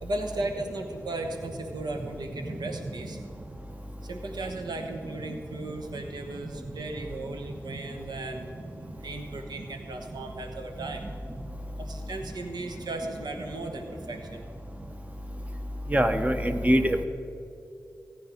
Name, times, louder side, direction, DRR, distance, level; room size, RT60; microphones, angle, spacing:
voice 1, 0.0-3.2 4.0-11.0 11.8-14.4, right 2 dB, 85° right, 4 dB, 1.2 m, -36 dB
voice 2, 15.9-17.0, equal, 20° right, 7 dB, 1.0 m, -23 dB
15.0 x 9.6 x 5.1 m, 2.6 s
cardioid pair, 45°, 7 cm